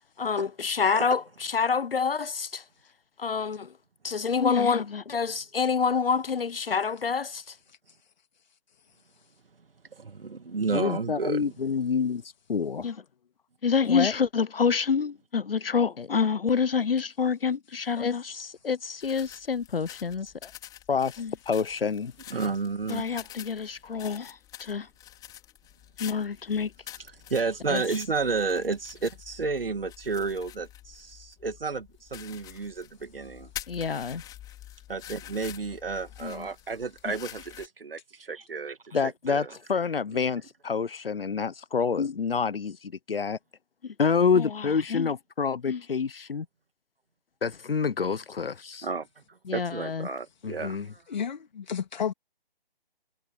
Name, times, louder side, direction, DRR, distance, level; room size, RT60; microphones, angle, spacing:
voice 1, 0.2-2.6 3.2-3.7 4.0-7.5 10.7-12.2 12.5-13.0 13.6-20.5 20.9-22.1 22.9-24.9 26.0-26.7 27.7-27.8 33.7-34.2 36.2-36.5 37.1-37.2 38.9-43.4 43.8-46.5 47.4-48.9 49.5-50.1 50.4-50.9, left 5 dB, 70° left, 0.9 m, -27 dB
voice 2, 9.9-11.5 22.3-23.1 27.1-33.5 34.9-39.6 40.1-40.2 48.8-51.0, right 4 dB, 70° right, 2.4 m, -32 dB
sound 1, 19.0-37.7, left 13 dB, 15° left, 5.1 m, -47 dB
voice 3, 51.1-52.1, left 7 dB, 50° left, 2.9 m, -31 dB
figure-of-eight pair, 145°, 30 cm